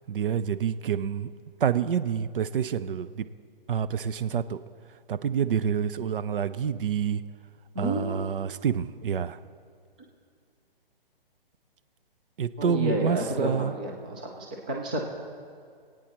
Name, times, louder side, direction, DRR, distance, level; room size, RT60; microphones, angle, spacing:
voice 1, 0.1-1.3 1.6-3.3 3.7-4.6 5.1-7.2 7.8-9.4 12.4-13.8, right 8 dB, 65° right, 13 dB, 0.6 m, -28 dB
voice 2, 7.7-8.2 12.6-15.0, right 1 dB, 10° right, 0 dB, 0.3 m, -30 dB
26.0 x 9.0 x 3.0 m, 2.3 s
hypercardioid pair, 145°, 30 cm